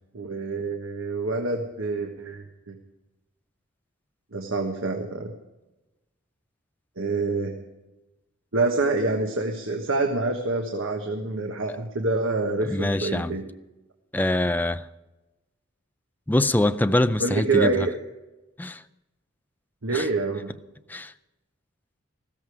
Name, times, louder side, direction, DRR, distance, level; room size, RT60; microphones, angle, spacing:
voice 1, 0.1-2.7 4.3-5.3 7.0-7.6 8.5-13.4 17.2-17.9 19.8-20.5, right 3 dB, 80° right, 1.3 m, -26 dB
voice 2, 12.6-13.4 14.1-14.9 16.3-17.9 18.6-18.8 19.9-20.1 20.9-21.1, left 1 dB, 10° left, 0.4 m, -24 dB
15.0 x 13.5 x 4.8 m
head